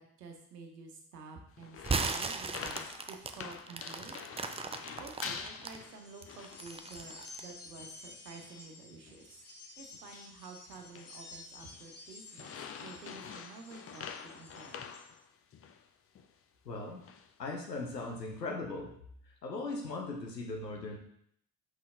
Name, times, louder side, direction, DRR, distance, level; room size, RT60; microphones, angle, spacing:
voice 1, 0.0-2.8 3.1-4.2 5.0-9.4 9.8-14.8, right 4 dB, 80° right, 3 dB, 1.1 m, -50 dB
sound 1, 1.6-6.8 7.0-7.4 7.8-8.0 8.4-8.7 9.1-9.3 9.9-10.4 10.7-11.2 11.6-11.9 12.3-15.8 16.1-16.3 16.9-17.3 17.8-18.2, left 6 dB, 30° left, 0.7 m, -46 dB
sound 2, 1.8-5.8 6.2-7.5, right 4 dB, 15° right, 0.5 m, -36 dB
sound 3, 5.7-15.1, left 3 dB, 55° left, 1.8 m, -52 dB
voice 2, 16.6-17.0 17.4-18.9 19.4-21.0, left 3 dB, 85° left, 0 dB, 1.0 m, -38 dB
6.2 x 5.8 x 3.6 m, 0.67 s
figure-of-eight pair, 50°, 48 cm